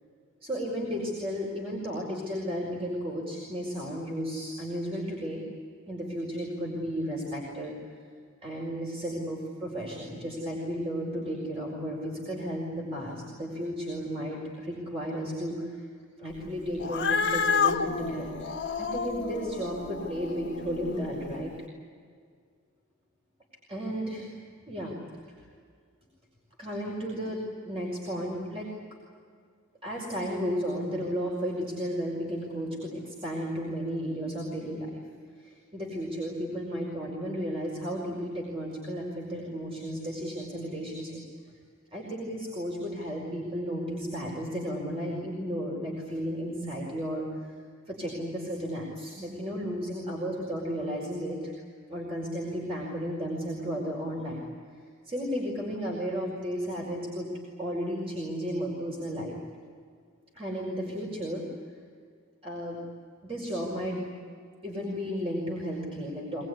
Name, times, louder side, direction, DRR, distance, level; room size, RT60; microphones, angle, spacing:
voice 1, 0.4-5.4 5.9-7.7 8.4-15.8 16.2-21.5 23.7-24.3 24.7-25.0 25.3-25.4 26.6-28.7 29.8-35.0 35.4-41.2 41.9-47.2 47.9-51.5 51.9-54.4 55.0-57.3 57.6-59.4 60.3-61.4 62.4-62.8 63.2-64.0 64.6-66.4, equal, 30° right, -3 dB, 4.9 m, -33 dB
Cat, 16.8-21.4, left 5 dB, 55° left, 1.7 m, -30 dB
24.0 x 21.5 x 9.7 m, 2.1 s
head